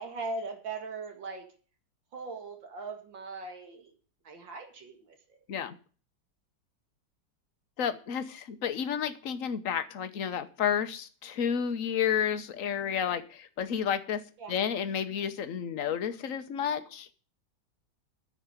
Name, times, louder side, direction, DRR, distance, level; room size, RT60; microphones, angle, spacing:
voice 1, 0.0-1.5 2.1-3.9 4.2-5.4 14.4-14.6, right 3 dB, 85° right, 4 dB, 2.8 m, -40 dB
voice 2, 7.8-14.2 14.5-17.1, left 8 dB, 50° left, 10 dB, 1.3 m, -31 dB
10.0 x 7.0 x 9.2 m, 0.40 s
omnidirectional pair, 2.0 m